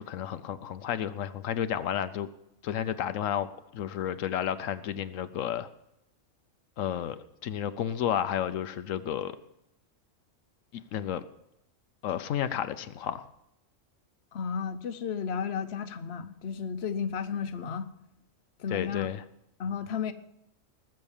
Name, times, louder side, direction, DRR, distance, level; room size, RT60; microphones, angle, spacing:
voice 1, 0.0-2.3 2.6-5.7 6.8-9.4 10.7-11.2 12.0-13.3 18.7-19.2, left 10 dB, 90° left, 11 dB, 1.1 m, -32 dB
voice 2, 14.3-17.9 18.6-19.1 19.6-20.1, left 6 dB, 60° left, 10 dB, 1.1 m, -33 dB
20.0 x 6.7 x 7.2 m, 0.81 s
omnidirectional pair, 1.3 m